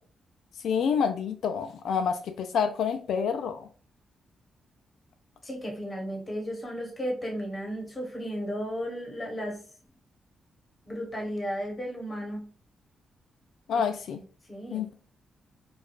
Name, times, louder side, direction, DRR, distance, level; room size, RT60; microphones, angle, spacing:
voice 1, 0.6-3.7 13.7-14.2 14.7-14.9, left 6 dB, 75° left, 0.3 m, -28 dB
voice 2, 5.4-9.6 10.9-12.4 13.7-13.8 14.5-14.8, equal, 20° left, 1.0 m, -34 dB
4.5 x 2.3 x 2.3 m
wide cardioid pair, 170°, 0 cm